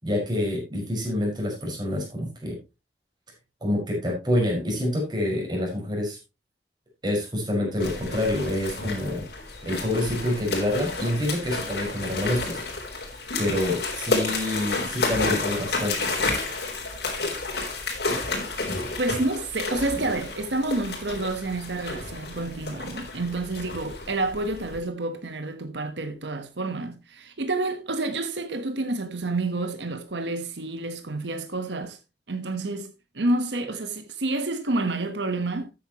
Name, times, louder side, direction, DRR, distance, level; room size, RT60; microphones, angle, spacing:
voice 1, 0.0-2.6 3.6-6.2 7.0-9.3 9.6-12.6 13.4-16.0, left 1 dB, 25° right, 5.4 m, -27 dB
sound 1, 7.8-24.8, left 3 dB, 65° left, 3.9 m, -31 dB
voice 2, 19.0-32.0 32.3-35.7, right 2 dB, 85° right, 1.2 m, -29 dB
13.0 x 9.2 x 3.0 m
head